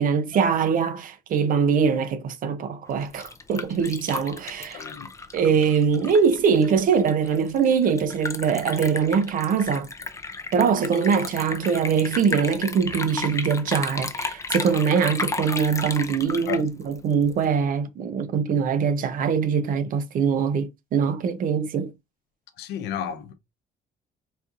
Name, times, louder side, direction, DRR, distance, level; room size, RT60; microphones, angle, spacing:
voice 1, 0.0-4.8 5.3-9.9 10.5-21.9, right 6 dB, 55° right, 0.6 m, -23 dB
Liquid, 2.9-17.4, left 3 dB, 15° left, 0.5 m, -34 dB
voice 2, 4.7-5.1 16.5-16.7 22.6-23.3, left 9 dB, 80° left, 0.7 m, -32 dB
4.2 x 2.4 x 2.5 m
cardioid pair, 110°, 17 cm